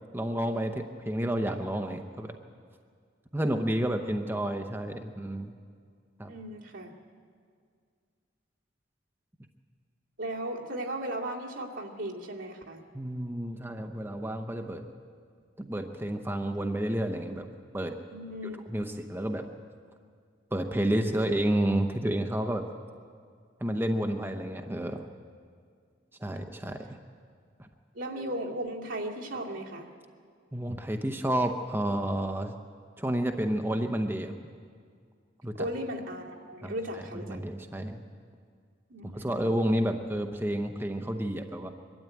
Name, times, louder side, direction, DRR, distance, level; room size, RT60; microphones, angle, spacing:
voice 1, 0.1-2.4 3.3-5.5 6.2-6.3 12.9-14.9 15.6-18.0 18.7-19.5 20.5-22.7 23.6-25.1 26.2-27.0 27.6-27.7 30.5-32.5 33.0-34.3 35.4-35.7 36.6-37.0 37.3-38.0 39.1-41.7, right 1 dB, 10° right, 5 dB, 0.7 m, -30 dB
voice 2, 6.3-6.9 10.2-12.8 18.1-18.6 20.9-21.3 27.9-29.9 35.5-37.4 38.9-39.6, right 1 dB, 75° right, -2 dB, 2.4 m, -36 dB
23.0 x 12.5 x 9.1 m, 2.1 s
head